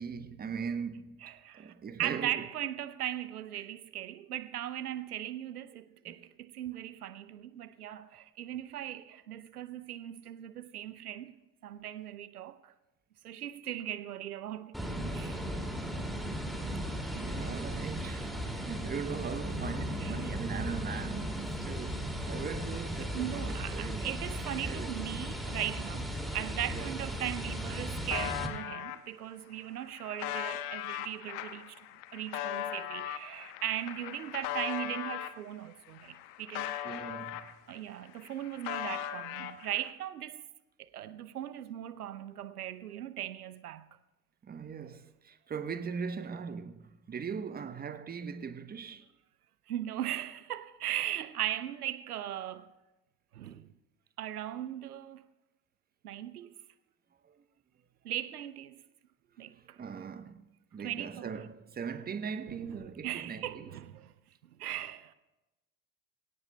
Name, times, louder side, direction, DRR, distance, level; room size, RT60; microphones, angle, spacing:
voice 1, 0.0-2.5 6.1-6.2 17.1-18.3 18.6-24.1 24.6-25.2 26.7-26.9 36.8-37.5 44.4-49.1 57.2-57.4 59.6-63.7, right 6 dB, 20° right, 0.9 m, -40 dB
voice 2, 1.2-1.7 2.0-11.4 11.6-12.7 13.2-14.8 15.1-15.4 20.0-20.2 23.1-31.8 32.1-36.7 37.7-40.4 40.8-43.9 49.7-52.7 53.3-53.7 54.2-55.2 56.0-56.5 58.0-58.8 59.4-59.8 60.8-61.3 62.5-64.1 64.4-65.1, right 11 dB, 85° right, 0.6 m, -38 dB
sound 1, 14.7-28.5, equal, ahead, 2.3 m, -36 dB
sound 2, 27.1-27.2 27.4-29.0 29.6-35.4 35.9-37.8 38.1-39.9, left 12 dB, 55° left, 1.0 m, -39 dB
23.0 x 18.0 x 2.2 m
figure-of-eight pair, 65°, 44 cm